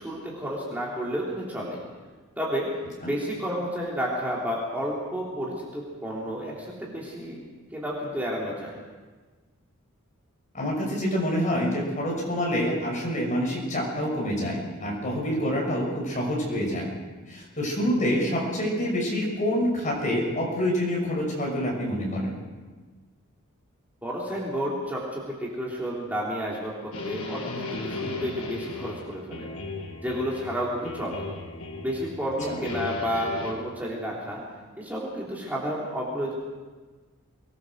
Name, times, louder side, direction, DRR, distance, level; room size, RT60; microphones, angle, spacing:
voice 1, 0.0-1.8 2.4-2.7 3.0-7.4 7.7-8.8 24.0-29.5 30.0-31.3 31.8-34.4 34.8-36.3, equal, 10° right, -5 dB, 3.4 m, -31 dB
voice 2, 10.5-16.9 17.3-22.3 32.5-32.6, equal, 35° left, -1 dB, 6.5 m, -27 dB
sound 1, 26.9-30.6 30.8-32.1 32.4-33.5, left 2 dB, 80° left, 5.1 m, -35 dB
24.0 x 19.5 x 6.4 m, 1.4 s
head